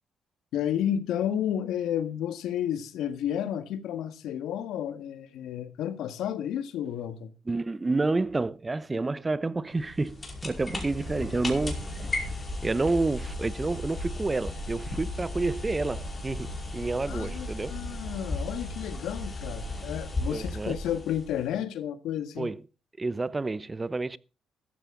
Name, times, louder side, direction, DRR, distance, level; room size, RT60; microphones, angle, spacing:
voice 1, 0.5-7.3 17.1-22.5, left 10 dB, 85° left, 1.6 m, -31 dB
voice 2, 7.5-10.2 10.4-11.9 12.6-17.7 20.3-20.8 22.4-22.6 23.0-24.2, right 3 dB, 20° right, 0.8 m, -29 dB
sound 1, 9.8-21.6, left 2 dB, 30° left, 5.1 m, -35 dB
14.5 x 13.5 x 3.8 m
cardioid pair, 90°, 0 cm